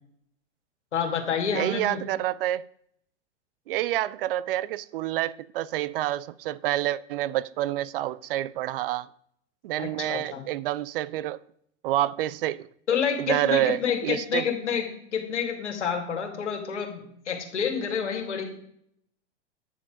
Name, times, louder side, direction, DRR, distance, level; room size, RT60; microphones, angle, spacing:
voice 1, 0.9-2.0 9.8-10.4 12.9-18.4, left 7 dB, 80° left, 2.4 m, -28 dB
voice 2, 1.5-2.7 3.7-9.1 9.6-11.4 11.8-12.7 13.2-14.5, right 14 dB, 50° right, 0.5 m, -28 dB
10.0 x 7.3 x 5.1 m
hypercardioid pair, 105°, 35 cm